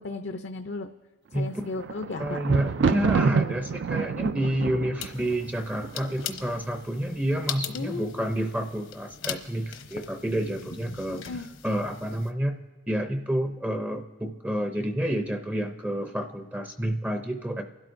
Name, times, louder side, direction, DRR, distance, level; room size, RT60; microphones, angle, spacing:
voice 1, 0.0-0.9 1.3-2.4 7.7-8.2 11.1-11.5, left 3 dB, 60° left, 7 dB, 0.5 m, -35 dB
voice 2, 1.3-1.7 2.2-11.2 11.6-12.6 12.9-17.6, right 1 dB, 10° right, 6 dB, 0.5 m, -29 dB
Thunder, 1.5-6.6 7.3-7.8 8.1-8.2, right 5 dB, 60° right, 0.3 m, -28 dB
sound 1, 5.0-12.3, left 8 dB, 75° left, 1.0 m, -40 dB
29.0 x 12.5 x 2.6 m, 1.4 s
head